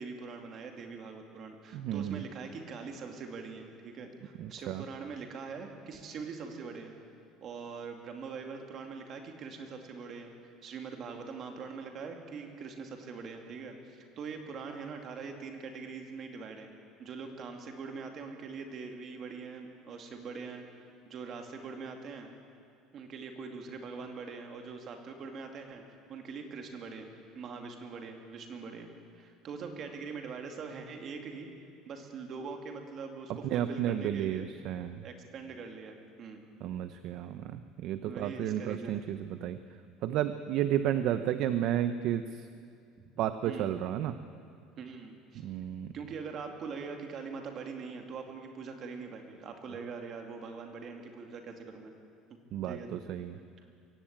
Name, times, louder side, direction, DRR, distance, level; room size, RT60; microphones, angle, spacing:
voice 1, 0.0-6.9 7.4-16.7 17.0-22.3 22.9-25.8 26.1-27.1 27.3-28.9 29.1-31.5 31.8-34.5 35.0-36.4 38.0-39.1 43.0-43.1 43.4-43.8 44.8-45.4 45.9-51.9 52.3-53.0, right 5 dB, 35° right, 4 dB, 2.4 m, -43 dB
voice 2, 1.7-2.2 4.4-4.8 33.5-35.0 36.6-39.6 40.0-42.3 43.2-44.1 45.4-45.9 52.5-52.8 53.1-53.4, right 11 dB, 50° right, 11 dB, 0.7 m, -32 dB
23.0 x 16.5 x 8.8 m, 2.4 s
cardioid pair, 170°, 0 cm